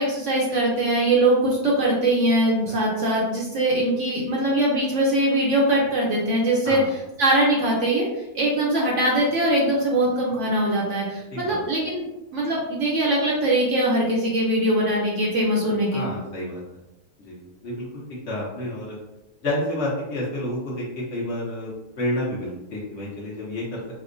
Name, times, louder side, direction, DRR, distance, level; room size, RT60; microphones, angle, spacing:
voice 1, 0.0-6.8 7.2-12.0 12.3-16.1, right 1 dB, 60° right, -3 dB, 0.8 m, -22 dB
voice 2, 15.9-16.8 17.2-17.9 18.3-19.0 19.4-23.8, left 1 dB, 55° left, -6 dB, 0.9 m, -30 dB
4.3 x 2.1 x 2.5 m, 0.99 s
omnidirectional pair, 1.7 m